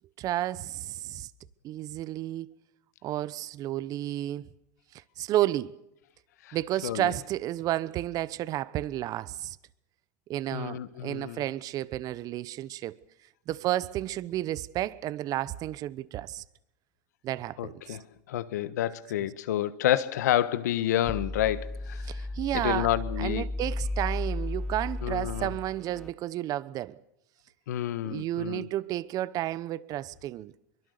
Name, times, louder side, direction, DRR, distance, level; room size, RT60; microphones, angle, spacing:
voice 1, 0.2-1.3 1.6-2.5 3.0-4.4 5.2-5.7 6.5-9.6 10.3-13.0 13.5-16.4 17.2-18.0 22.0-22.9 23.2-27.0 28.0-30.5, right 14 dB, 40° right, 1.0 m, -32 dB
voice 2, 6.8-7.1 10.5-11.4 17.6-22.3 22.5-23.5 25.0-25.5 27.7-28.7, left 12 dB, 80° left, 1.4 m, -29 dB
sound 1, 21.0-26.1, left 2 dB, 5° left, 1.0 m, -34 dB
23.5 x 23.0 x 6.7 m
hypercardioid pair, 110°, 9 cm